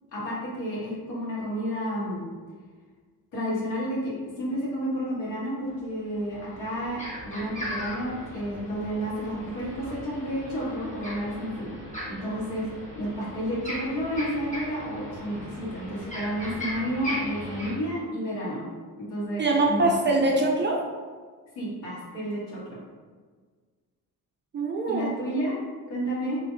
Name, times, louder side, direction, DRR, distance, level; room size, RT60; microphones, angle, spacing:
voice 1, 0.1-2.2 3.3-11.7 12.1-12.7 12.9-18.6 19.0-19.8 21.5-22.8 24.9-26.4, equal, 60° left, -6 dB, 1.4 m, -31 dB
sound 1, 6.1-17.7, equal, 15° left, 1.3 m, -38 dB
voice 2, 19.4-20.8 24.5-25.1, right 2 dB, 25° right, 0 dB, 0.4 m, -23 dB
2.9 x 2.6 x 3.2 m, 1.6 s
hypercardioid pair, 50°, 49 cm